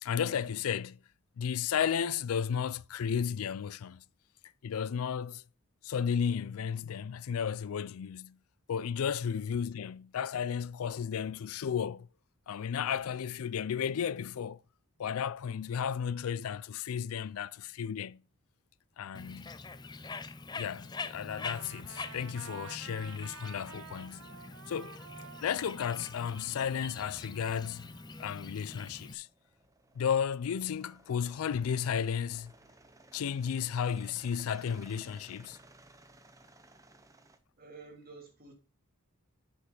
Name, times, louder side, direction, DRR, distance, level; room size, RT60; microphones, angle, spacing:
voice 1, 0.0-1.0 1.4-4.0 4.6-5.4 5.8-8.4 8.7-12.1 12.5-14.6 15.0-18.2 19.0-19.5 20.5-24.2 24.7-25.0 25.4-27.9 28.2-29.3 30.0-32.5 33.1-35.6, left 7 dB, 80° left, 0.4 m, -33 dB
Bird, 19.1-29.1, left 4 dB, 20° left, 0.4 m, -45 dB
Trumpet, 21.3-28.4, right 7 dB, 60° right, 0.5 m, -52 dB
sound 1, 28.7-37.4, right 2 dB, 15° right, 0.7 m, -58 dB
voice 2, 37.6-38.5, right 4 dB, 40° right, 2.6 m, -51 dB
8.8 x 5.7 x 3.8 m
head